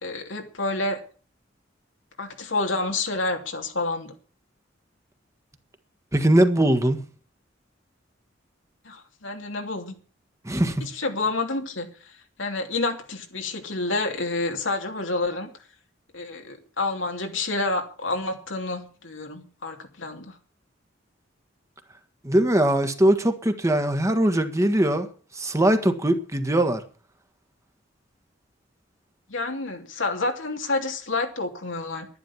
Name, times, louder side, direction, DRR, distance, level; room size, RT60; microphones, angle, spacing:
voice 1, 0.0-1.0 2.2-4.1 8.8-9.9 10.8-12.1 12.4-15.5 16.1-20.4 29.3-32.1, left 2 dB, 85° left, 2.9 m, -29 dB
voice 2, 6.1-7.0 10.4-10.9 22.2-25.1 25.3-26.8, right 1 dB, 15° right, 1.5 m, -21 dB
11.5 x 11.0 x 7.2 m
head